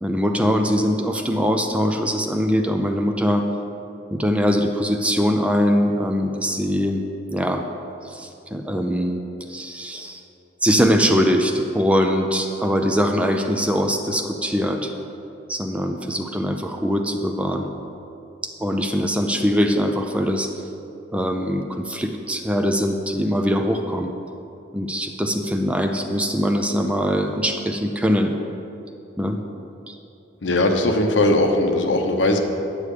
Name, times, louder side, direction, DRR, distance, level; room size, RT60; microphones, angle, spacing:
voice 1, 0.0-3.5 4.1-7.0 7.3-7.6 8.0-9.2 9.5-10.2 10.6-14.9 15.5-17.7 18.6-20.5 21.1-24.1 24.7-28.4 29.2-29.4 29.9-30.0, equal, 5° right, 4 dB, 0.4 m, -22 dB
voice 2, 30.4-32.4, left 2 dB, 70° left, 4 dB, 0.9 m, -19 dB
9.6 x 8.7 x 4.9 m, 2.8 s
head